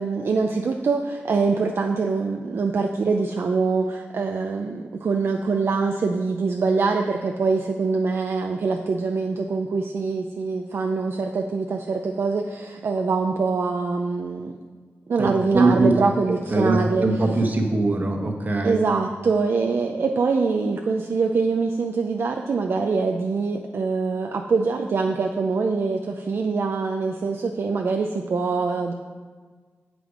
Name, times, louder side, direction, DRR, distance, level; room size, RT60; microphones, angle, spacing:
voice 1, 0.0-14.5 15.1-17.0 18.6-28.9, right 4 dB, 60° right, 3 dB, 0.5 m, -24 dB
voice 2, 15.2-15.9 16.5-18.8, right 2 dB, 40° right, 3 dB, 1.2 m, -21 dB
8.0 x 7.7 x 5.1 m, 1.5 s
wide cardioid pair, 135°, 5 cm